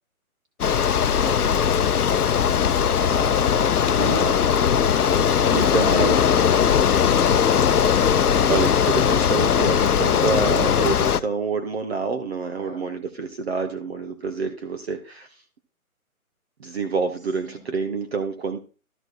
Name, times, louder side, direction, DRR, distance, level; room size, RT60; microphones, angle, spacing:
Bicycle, 0.6-11.2, left 8 dB, 90° left, 0.7 m, -19 dB
voice 1, 2.5-4.4 5.4-7.0 12.6-12.8 17.4-17.7, equal, 10° right, 0 dB, 2.0 m, -35 dB
voice 2, 4.0-4.3 5.5-6.1 8.5-15.4 16.6-18.6, right 5 dB, 45° right, 6 dB, 1.0 m, -28 dB
13.0 x 4.4 x 4.5 m, 0.37 s
hypercardioid pair, 160°, 44 cm